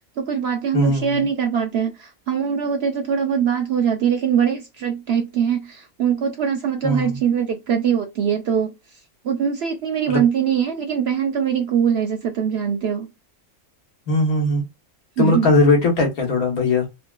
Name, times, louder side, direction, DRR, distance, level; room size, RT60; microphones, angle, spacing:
voice 1, 0.2-8.7 9.2-13.1 15.2-15.5, right 7 dB, 65° right, 0.6 m, -22 dB
voice 2, 0.7-1.2 6.8-7.2 10.1-10.2 14.1-14.6 15.2-16.9, left 2 dB, 90° left, 1.6 m, -19 dB
3.5 x 2.2 x 2.3 m
omnidirectional pair, 1.5 m